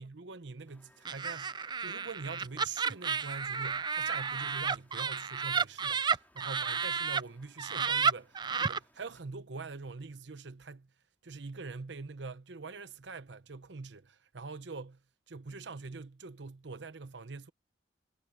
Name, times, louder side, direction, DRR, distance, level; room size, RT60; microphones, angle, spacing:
voice 1, 0.0-10.9 11.2-15.0 15.3-17.5, right 4 dB, 70° right, 0.8 m, -44 dB
sound 1, 0.7-9.2, left 1 dB, 10° left, 4.2 m, -66 dB
Laughter, 1.0-7.2 7.6-8.8, right 6 dB, 25° right, 0.4 m, -32 dB
head